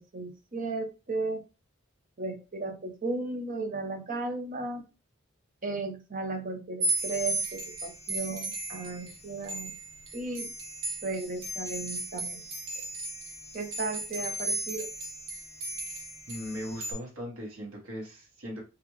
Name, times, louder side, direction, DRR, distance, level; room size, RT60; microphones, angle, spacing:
voice 1, 0.1-1.4 2.2-4.8 5.6-9.7 10.1-10.5 11.0-12.4 13.5-14.9, right 3 dB, 40° right, 5 dB, 0.6 m, -35 dB
sound 1, 6.8-16.9, right 2 dB, 60° right, 1.0 m, -35 dB
voice 2, 16.3-18.6, equal, 80° right, -1 dB, 1.3 m, -39 dB
3.3 x 2.4 x 3.1 m, 0.30 s
head